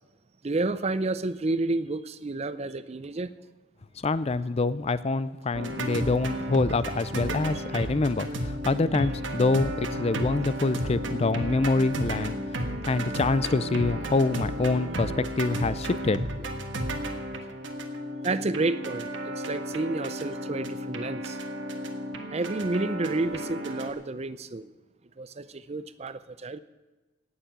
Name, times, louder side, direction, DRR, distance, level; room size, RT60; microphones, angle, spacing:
voice 1, 0.4-3.3 7.5-7.9 9.0-9.1 18.2-21.4 22.3-24.7 25.2-26.6, right 2 dB, 30° right, 0.5 m, -30 dB
voice 2, 4.0-16.2, left 3 dB, 30° left, 0.4 m, -26 dB
sound 1, 5.5-23.9, equal, 60° right, 1.4 m, -33 dB
17.0 x 7.0 x 8.9 m
head